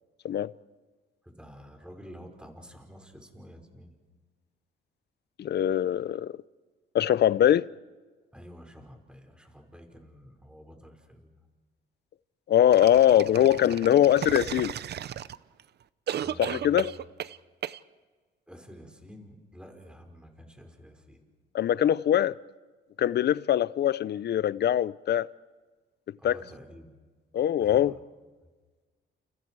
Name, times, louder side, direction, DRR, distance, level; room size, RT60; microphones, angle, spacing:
voice 1, 1.2-3.9 8.3-11.4 16.2-17.0 18.5-21.2 26.2-26.9 27.6-28.0, equal, 5° right, 5.3 m, -49 dB
voice 2, 5.4-6.3 6.9-7.7 12.5-14.7 16.4-17.0 21.5-22.4 23.0-25.3 26.2-26.4 27.3-27.9, left 11 dB, 55° left, 0.7 m, -22 dB
sound 1, 12.7-15.6 16.1-17.4 17.6-17.8, right 10 dB, 55° right, 0.7 m, -34 dB
30.0 x 29.5 x 4.8 m
cardioid pair, 90°, 20 cm